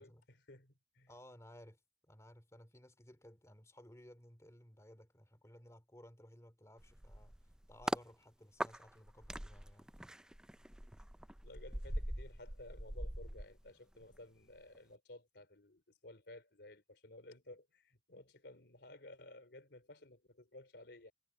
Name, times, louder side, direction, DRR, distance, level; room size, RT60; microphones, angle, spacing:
voice 1, 0.0-1.1 11.4-21.1, left 2 dB, 70° left, 3.6 m, -56 dB
voice 2, 1.1-1.8 2.1-7.3 7.7-9.9, left 1 dB, 15° left, 2.7 m, -58 dB
sound 1, 6.8-8.1 8.6-14.2 14.5-14.8, right 1 dB, 5° right, 0.3 m, -43 dB
head